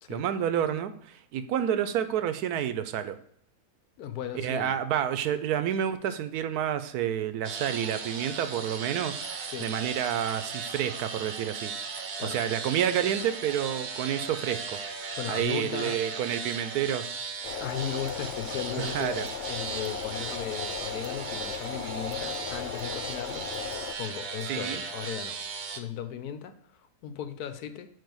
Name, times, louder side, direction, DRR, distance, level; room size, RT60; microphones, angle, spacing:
voice 1, 0.1-3.2 4.3-11.7 12.2-14.8 15.3-17.1 18.8-19.3 24.5-24.8, right 9 dB, 85° right, 11 dB, 1.1 m, -29 dB
voice 2, 4.0-4.8 9.5-9.7 12.2-12.4 15.2-16.0 17.6-19.2 19.5-23.5 24.0-25.4 25.7-27.9, left 9 dB, 85° left, 10 dB, 1.2 m, -37 dB
sound 1, 7.4-25.8, right 5 dB, 50° right, 0.8 m, -37 dB
sound 2, 17.4-23.9, left 7 dB, 65° left, 0.7 m, -37 dB
4.8 x 4.7 x 6.1 m, 0.66 s
omnidirectional pair, 1.6 m